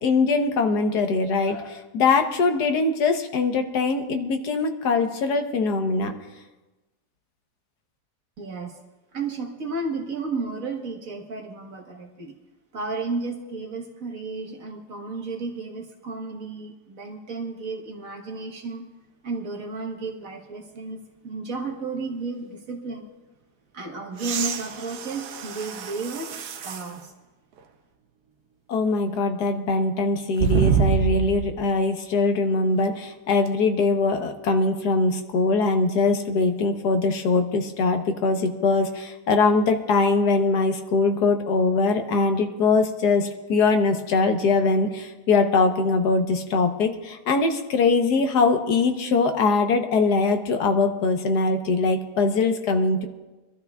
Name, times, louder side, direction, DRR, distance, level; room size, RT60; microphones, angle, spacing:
voice 1, 0.0-6.1 28.7-53.1, left 3 dB, 75° left, 6 dB, 1.5 m, -22 dB
voice 2, 8.4-8.8 9.1-12.4 12.7-18.8 19.2-23.1 23.7-26.3 26.6-27.1, right 3 dB, 55° right, 3 dB, 1.7 m, -33 dB
sound 1, 24.2-26.9 27.6-27.7 30.4-31.6 33.5-33.6, right 7 dB, 70° right, 1.3 m, -26 dB
25.0 x 12.5 x 2.3 m, 1.1 s
omnidirectional pair, 1.8 m